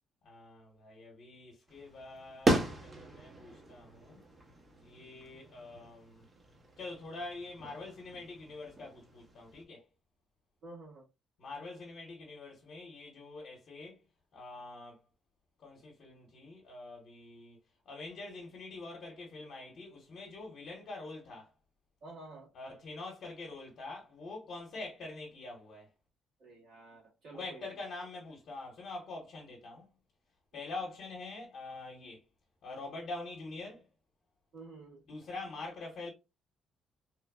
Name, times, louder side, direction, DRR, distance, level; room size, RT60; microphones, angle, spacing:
voice 1, 0.2-4.2 4.8-6.2 6.8-9.9 11.4-14.0 14.3-15.0 15.6-17.6 17.9-21.5 22.5-25.9 27.3-29.8 30.5-32.2 32.6-33.8 35.1-36.1, left 3 dB, 55° left, 0.9 m, -45 dB
sound 1, 1.7-9.6, right 2 dB, 25° right, 0.6 m, -37 dB
voice 2, 10.6-11.1 22.0-22.5 26.4-27.7 34.5-35.0, right 2 dB, 70° right, 1.6 m, -50 dB
3.0 x 2.2 x 2.2 m
cardioid pair, 125°, 0 cm